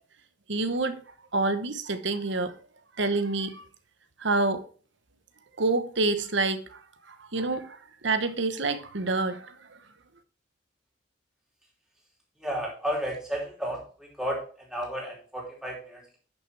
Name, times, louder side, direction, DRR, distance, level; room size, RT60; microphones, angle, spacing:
voice 1, 0.5-1.0 1.3-2.5 3.0-3.6 4.2-4.6 5.6-6.8 7.1-9.6, right 3 dB, 65° right, 1.0 m, -27 dB
voice 2, 12.4-13.8 14.2-14.4 14.7-16.2, equal, 5° right, 3.2 m, -32 dB
10.5 x 6.5 x 3.4 m
head